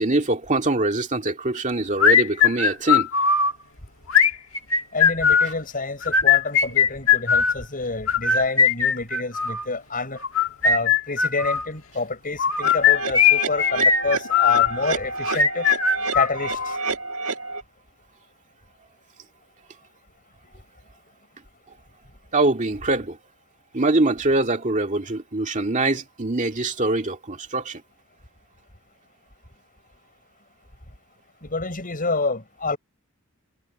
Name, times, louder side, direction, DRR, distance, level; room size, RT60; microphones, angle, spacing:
voice 1, 0.0-3.1 22.3-23.2 23.7-27.8, right 2 dB, 35° right, 2.3 m, -23 dB
sound 1, 2.0-3.5 4.1-5.5 6.0-7.6 8.1-9.7 10.2-11.7 12.4-14.7 15.3-16.8, left 7 dB, 65° left, 1.9 m, -19 dB
voice 2, 4.9-10.2 10.6-15.7 16.1-16.8 31.4-32.8, left 3 dB, 40° left, 7.0 m, -28 dB
sound 2, 12.6-17.6, right 3 dB, 85° right, 1.5 m, -29 dB
head